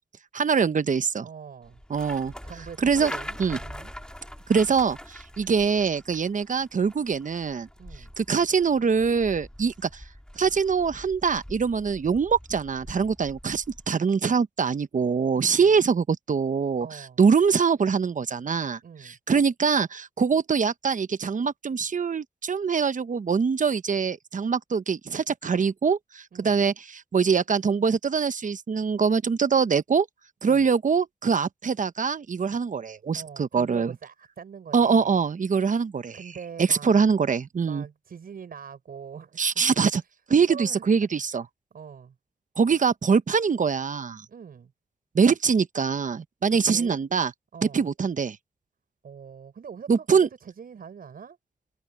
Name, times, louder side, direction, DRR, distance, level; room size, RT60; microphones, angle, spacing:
voice 1, 0.3-1.2 1.9-2.3 2.8-3.1 3.4-3.6 4.5-7.7 8.2-10.0 10.4-30.1 30.4-33.9 34.7-36.2 36.6-37.8 39.4-40.0 40.3-41.4 42.6-44.2 45.1-47.3 47.7-48.4 49.9-50.3, right 5 dB, 60° right, 1.0 m, -23 dB
voice 2, 1.2-1.8 2.4-3.9 7.8-8.1 15.3-15.8 16.8-17.2 18.8-19.2 26.3-26.6 30.4-30.7 33.1-35.2 36.1-37.0 37.6-39.6 39.9-40.1 40.5-41.1 41.7-42.1 44.3-44.7 46.5-47.0 47.5-47.9 49.0-51.4, right 7 dB, 80° right, 6.9 m, -43 dB
Wooden bridge, 1.6-13.9, equal, 5° left, 3.4 m, -43 dB
cardioid pair, 40°, 15 cm